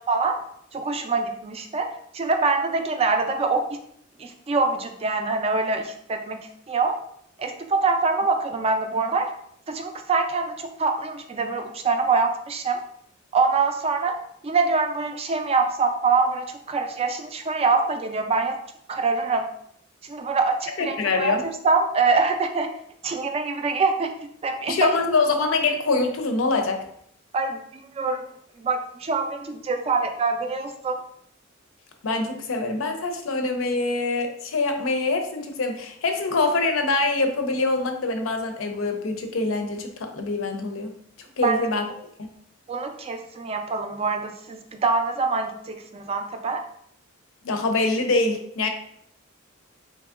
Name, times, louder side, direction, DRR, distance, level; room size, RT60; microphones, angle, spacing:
voice 1, 0.1-0.4 0.7-1.9 2.1-3.6 4.2-7.0 7.4-9.3 9.7-12.8 13.3-14.2 14.4-18.6 18.9-19.5 20.0-22.7 23.0-24.1 24.4-24.9 27.3-28.2 28.6-31.0 41.4-41.6 42.7-46.6, right 4 dB, 30° right, 6 dB, 0.3 m, -24 dB
voice 2, 20.8-21.4 24.7-26.8 32.0-40.9 41.4-41.9 47.4-48.7, left 3 dB, 75° left, 5 dB, 0.5 m, -24 dB
3.5 x 2.9 x 2.4 m, 0.69 s
head